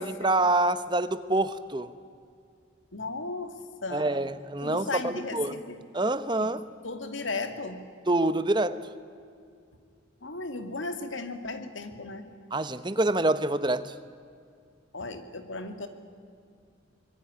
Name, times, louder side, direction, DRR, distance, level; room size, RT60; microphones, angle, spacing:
voice 1, 0.0-1.9 3.9-5.6 5.9-6.6 8.1-8.8 12.5-13.9, right 2 dB, 25° right, 13 dB, 0.9 m, -26 dB
voice 2, 2.9-3.5 3.8-4.2 4.6-5.8 6.4-6.5 6.8-7.8 10.2-12.3 14.9-15.9, left 3 dB, 80° left, 8 dB, 2.4 m, -35 dB
25.0 x 21.5 x 10.0 m, 2.3 s
head